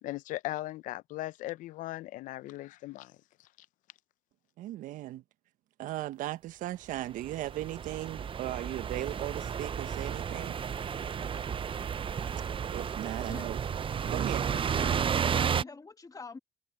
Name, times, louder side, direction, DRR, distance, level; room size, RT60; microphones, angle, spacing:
voice 1, 0.0-3.2, left 16 dB, 70° left, 0.8 m, -38 dB
voice 2, 4.6-5.2 5.8-10.6 12.7-13.6 14.0-14.5, right 14 dB, 70° right, 1.3 m, -37 dB
sound 1, 7.0-7.1 7.2-15.6, right 7 dB, 40° right, 0.8 m, -32 dB
voice 3, 14.0-16.4, left 4 dB, 25° left, 2.1 m, -47 dB
supercardioid pair, 65°, 14 cm